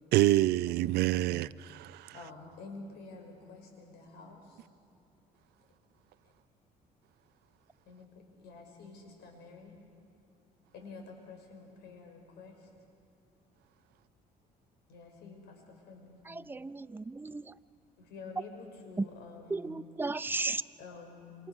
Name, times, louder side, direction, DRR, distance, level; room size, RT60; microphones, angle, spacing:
voice 1, 0.1-2.1, right 16 dB, 75° right, 0.5 m, -27 dB
voice 2, 1.1-1.6 2.1-4.6 6.2-6.3 7.9-9.7 10.7-12.7 14.9-16.2 18.0-19.8 20.8-21.4, left 4 dB, 80° left, 5.5 m, -49 dB
voice 3, 16.3-17.5 19.5-20.6, right 3 dB, 10° right, 0.5 m, -35 dB
27.5 x 26.5 x 6.2 m
cardioid pair, 110°, 17 cm